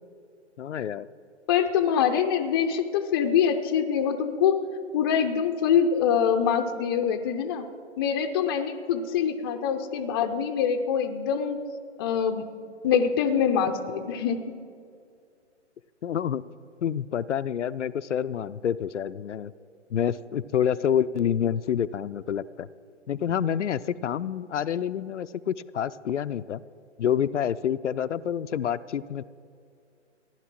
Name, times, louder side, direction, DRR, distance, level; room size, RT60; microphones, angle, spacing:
voice 1, 0.6-1.1 16.0-16.4 16.8-19.5 19.9-22.7 23.1-26.6 27.0-29.2, left 9 dB, 75° left, 13 dB, 0.5 m, -28 dB
voice 2, 1.5-4.6 4.9-7.7 8.0-11.6 12.0-12.5 12.8-14.5, left 7 dB, 20° left, 6 dB, 0.5 m, -24 dB
15.0 x 11.0 x 6.0 m, 2.3 s
figure-of-eight pair, 130°, 36 cm